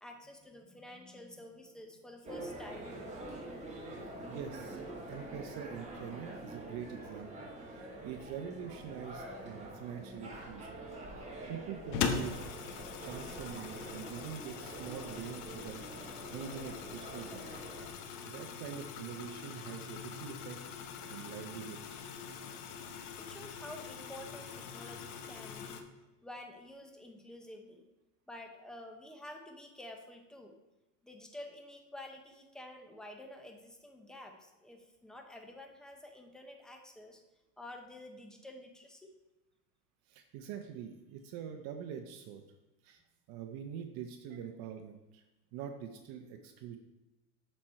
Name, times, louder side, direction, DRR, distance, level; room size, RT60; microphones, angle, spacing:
voice 1, 0.0-3.0 23.2-25.9 26.2-27.9 28.3-30.5 31.0-37.2 37.6-39.1, left 1 dB, ahead, 3 dB, 0.8 m, -50 dB
sound 1, 2.2-17.9, right 1 dB, 15° right, 1.8 m, -46 dB
voice 2, 4.3-4.8 5.1-10.8 11.2-12.5 13.0-17.5 18.2-22.1 40.1-42.4 42.8-43.0 43.3-45.2 45.5-46.8, right 8 dB, 45° right, 6 dB, 0.8 m, -45 dB
sound 2, 11.9-25.8, left 6 dB, 65° left, 1.0 m, -42 dB
7.3 x 4.4 x 4.4 m, 1.0 s
hypercardioid pair, 105°, 48 cm